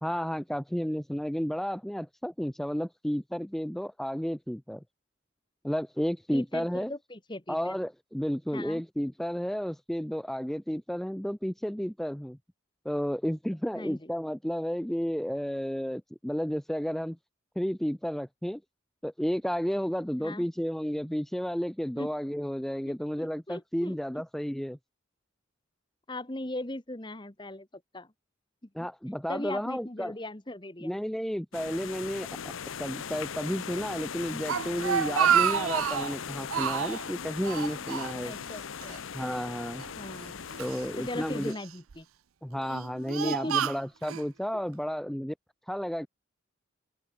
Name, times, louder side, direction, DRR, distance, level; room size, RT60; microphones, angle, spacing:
voice 1, 0.0-4.8 5.6-6.9 7.5-12.4 12.9-17.2 17.6-18.6 19.0-24.8 28.8-30.1 30.8-32.3 32.8-38.3 39.1-39.8 40.6-41.5 42.4-45.3 45.7-46.1, equal, ahead, 0.3 m, -32 dB
voice 2, 6.3-7.7 8.5-8.8 13.7-14.1 20.2-20.5 21.9-22.1 22.8-24.2 26.1-28.1 29.3-30.9 38.2-39.0 39.9-40.4 41.0-42.1 43.2-43.7 44.5-44.6, left 1 dB, 20° left, 1.3 m, -39 dB
sound 1, 31.5-41.5, left 7 dB, 75° left, 0.7 m, -39 dB
Speech, 34.2-36.2 36.5-37.1 37.4-38.6 38.8-39.0 39.8-40.8 41.5-41.9 42.6-44.2, right 8 dB, 90° right, 0.6 m, -29 dB
open air
head